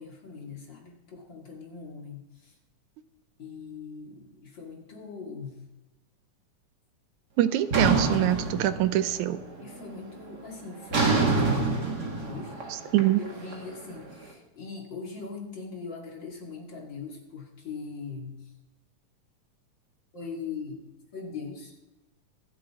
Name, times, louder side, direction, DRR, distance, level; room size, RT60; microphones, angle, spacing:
voice 1, 0.0-2.5 3.4-5.6 8.5-8.8 9.6-12.5 13.2-18.3 20.1-20.9 21.1-21.8, left 4 dB, 35° left, -1 dB, 2.7 m, -41 dB
voice 2, 7.4-9.4 12.9-13.2, right 13 dB, 75° right, 12 dB, 2.0 m, -24 dB
sound 1, 7.7-9.3 9.6-10.0 10.9-14.0, right 3 dB, 35° right, 2.1 m, -26 dB
25.5 x 8.6 x 3.7 m, 1.0 s
omnidirectional pair, 3.7 m